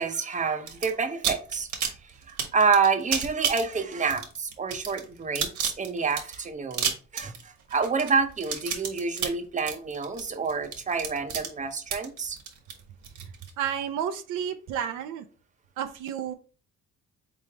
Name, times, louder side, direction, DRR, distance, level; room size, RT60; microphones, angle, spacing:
voice 1, 0.0-1.9 2.3-7.3 7.7-12.4, right 5 dB, 25° right, 6 dB, 0.7 m, -28 dB
sound 1, 0.7-0.9 1.2-13.5, right 7 dB, 70° right, 1.3 m, -31 dB
voice 2, 13.6-15.3 15.8-16.3, right 9 dB, 85° right, 8 dB, 0.6 m, -31 dB
3.9 x 3.3 x 3.4 m, 0.37 s
cardioid pair, 90°, 30 cm